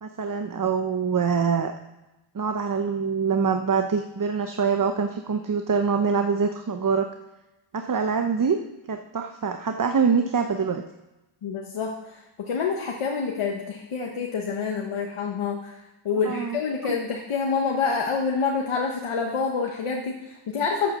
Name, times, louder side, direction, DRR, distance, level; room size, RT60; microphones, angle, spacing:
voice 1, 0.0-1.7 2.3-7.1 7.7-8.6 8.9-10.8 16.2-17.0, right 5 dB, 40° right, 6 dB, 0.8 m, -24 dB
voice 2, 11.4-15.8 16.0-20.9, left 5 dB, 90° left, 1 dB, 1.1 m, -27 dB
8.0 x 7.7 x 6.7 m, 1.0 s
cardioid pair, 45°, 49 cm